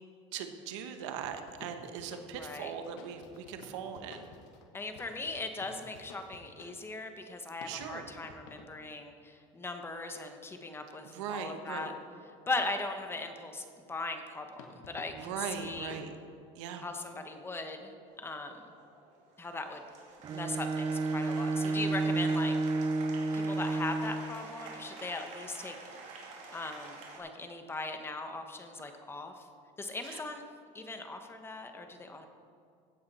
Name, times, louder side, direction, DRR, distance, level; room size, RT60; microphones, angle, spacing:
voice 1, 0.3-4.3 7.6-8.1 11.0-11.9 15.1-16.1 16.6-16.8 30.0-30.2, right 7 dB, 90° right, 7 dB, 1.1 m, -40 dB
sound 1, 1.0-6.8 7.6-8.7 14.6-16.0, left 4 dB, 85° left, 1.4 m, -52 dB
voice 2, 2.4-2.7 4.7-11.9 12.5-15.9 16.8-18.6 19.4-19.8 20.3-22.5 23.3-25.8 26.5-29.5 29.8-30.5 30.7-32.3, left 3 dB, 15° left, 6 dB, 1.1 m, -39 dB
Applause, 18.1-27.2, right 3 dB, 50° right, 2.7 m, -48 dB
Bowed string instrument, 20.2-24.4, right 3 dB, 30° right, 0.5 m, -31 dB
16.0 x 8.6 x 4.2 m, 2.4 s
supercardioid pair, 125°, 15 cm